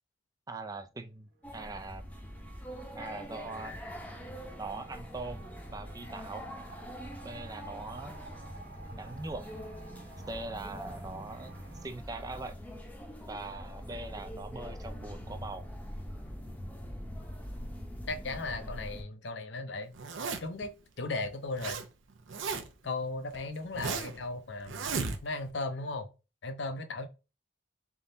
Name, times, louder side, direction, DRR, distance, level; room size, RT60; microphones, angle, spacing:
voice 1, 0.5-2.0 2.9-3.8 4.6-6.5 7.2-8.2 8.9-9.5 10.3-12.6 13.3-15.7, right 3 dB, 20° right, 0.3 m, -41 dB
sound 1, 1.3-11.9, right 2 dB, 60° right, 1.3 m, -50 dB
sound 2, 1.4-19.0, equal, 10° left, 0.7 m, -44 dB
voice 2, 18.1-19.9 20.4-21.8 22.8-24.9 25.2-26.1 26.4-27.1, left 3 dB, 65° left, 0.7 m, -36 dB
Zipper (clothing), 19.9-20.6 21.2-21.8 22.1-22.9 23.3-24.2 24.7-25.5, right 4 dB, 80° right, 0.7 m, -35 dB
4.0 x 3.6 x 2.7 m
head